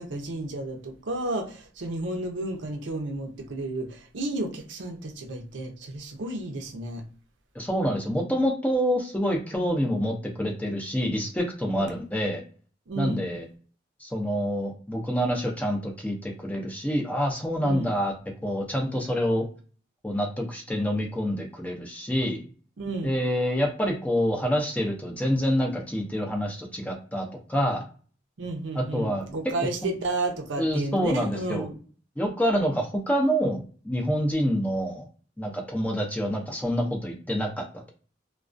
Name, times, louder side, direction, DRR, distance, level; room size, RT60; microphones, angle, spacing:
voice 1, 0.0-7.0 9.5-9.7 11.8-12.0 12.9-13.3 17.6-17.9 22.8-23.2 28.4-31.8, right 2 dB, 85° right, 0.6 m, -32 dB
voice 2, 7.5-12.4 13.0-13.5 14.0-18.1 18.4-19.4 20.0-22.4 23.0-27.8 28.8-29.2 30.6-31.7 32.2-35.0 35.4-37.9, equal, 10° left, 0.4 m, -27 dB
2.3 x 2.2 x 2.5 m
head